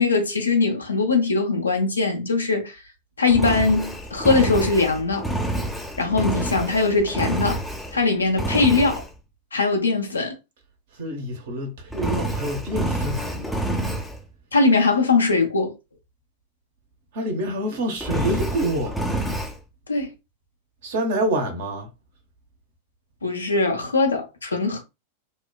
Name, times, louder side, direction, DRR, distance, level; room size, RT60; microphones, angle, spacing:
voice 1, 0.0-2.8 3.2-5.3 6.0-7.6 7.9-9.0 9.5-10.3 14.5-15.7 19.9-20.1 23.2-24.8, left 3 dB, 75° left, 0.6 m, -21 dB
Engine, 3.3-8.0 8.4-9.1 11.9-14.2 18.0-19.6, right 1 dB, ahead, 0.5 m, -28 dB
voice 2, 10.9-13.5 17.1-19.0 20.8-21.9, right 1 dB, 55° right, 0.8 m, -27 dB
3.0 x 2.1 x 2.3 m
figure-of-eight pair, 90°, 0 cm